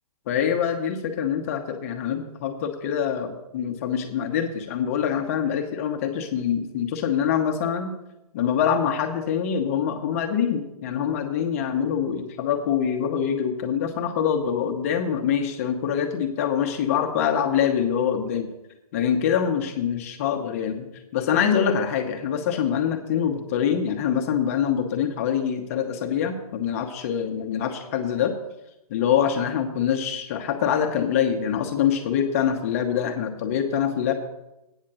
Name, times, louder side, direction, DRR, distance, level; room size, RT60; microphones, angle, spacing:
voice 1, 0.3-7.9 8.3-18.5 18.9-20.9 21.1-28.3 28.9-34.1, left 8 dB, 25° left, 5 dB, 0.8 m, -25 dB
8.8 x 6.5 x 7.3 m, 0.91 s
hypercardioid pair, 165°, 19 cm